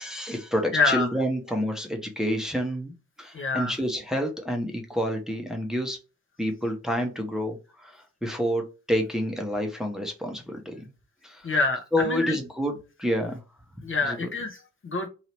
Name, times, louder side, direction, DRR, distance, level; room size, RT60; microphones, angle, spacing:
voice 1, 0.0-6.0 6.4-10.9 11.2-11.5 11.9-12.7 13.0-13.4 14.0-14.3, equal, ahead, 2 dB, 0.9 m, -28 dB
voice 2, 0.7-1.1 3.3-3.7 11.4-12.4 13.8-15.1, left 3 dB, 30° left, 3 dB, 0.9 m, -26 dB
2.9 x 2.8 x 3.0 m, 0.30 s
hypercardioid pair, 40°, 39 cm